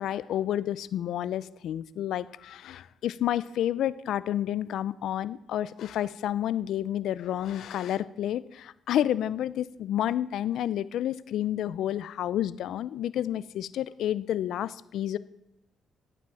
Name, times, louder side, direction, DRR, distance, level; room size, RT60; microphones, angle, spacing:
voice 1, 0.0-15.2, left 11 dB, 75° left, 17 dB, 0.6 m, -30 dB
12.5 x 9.1 x 7.6 m, 0.85 s
cardioid pair, 90°, 0 cm